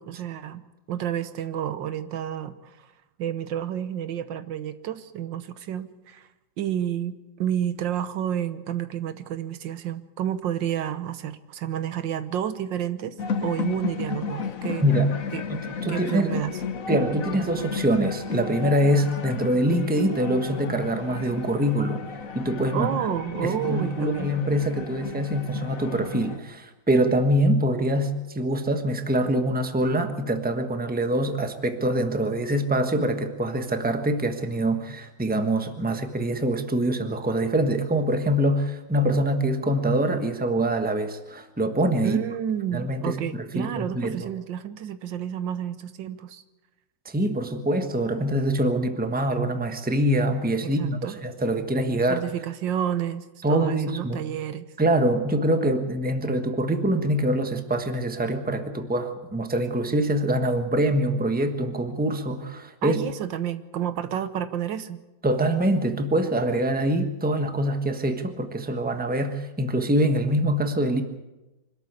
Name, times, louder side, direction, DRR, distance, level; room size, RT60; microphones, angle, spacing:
voice 1, 0.0-2.9 3.2-6.3 6.6-13.2 13.4-14.8 15.3-15.4 15.9-16.5 22.7-24.3 42.0-46.4 50.6-51.2 52.1-54.7 62.8-65.0, right 10 dB, 80° right, 12 dB, 1.7 m, -30 dB
sound 1, 13.2-26.4, left 5 dB, 50° left, 1.5 m, -33 dB
voice 2, 14.8-15.1 15.5-16.3 16.9-22.0 22.3-22.9 23.4-42.2 42.7-44.2 47.0-52.2 53.4-54.2 54.8-63.0 65.2-71.0, right 1 dB, 5° right, 6 dB, 1.2 m, -24 dB
25.0 x 13.0 x 8.3 m, 1.0 s
omnidirectional pair, 2.0 m